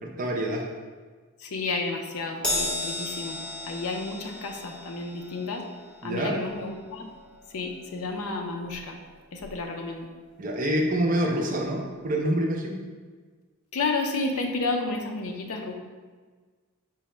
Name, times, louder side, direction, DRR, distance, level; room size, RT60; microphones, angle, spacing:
voice 1, 0.0-0.7 6.0-6.4 10.4-12.8, right 1 dB, 35° right, 1 dB, 0.5 m, -26 dB
voice 2, 1.4-5.6 6.0-7.1 7.5-9.0 9.3-10.1 13.7-15.7, left 3 dB, 85° left, 3 dB, 0.5 m, -31 dB
Crash cymbal, 2.4-9.1 9.4-9.6 10.7-10.8, left 1 dB, 5° left, 0.8 m, -35 dB
4.7 x 2.0 x 4.3 m, 1.5 s
head